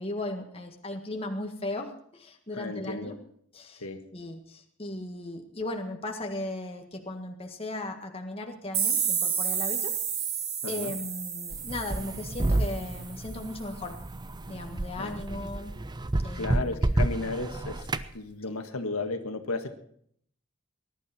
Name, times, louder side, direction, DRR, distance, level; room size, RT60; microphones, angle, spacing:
voice 1, 0.0-3.2 3.5-3.8 4.1-10.3 10.7-14.0 14.5-15.7 16.2-17.0 18.5-18.6, left 2 dB, 25° left, 3 dB, 1.7 m, -37 dB
voice 2, 2.6-3.1 3.8-4.0 10.6-10.9 15.0-15.2 16.3-17.9 18.1-19.7, left 3 dB, 90° left, 6 dB, 1.6 m, -34 dB
sound 1, 8.7-13.4, right 7 dB, 75° right, 3.5 m, -31 dB
sound 2, 11.5-18.1, right 2 dB, 20° right, 0.6 m, -30 dB
20.5 x 11.5 x 4.3 m, 0.65 s
head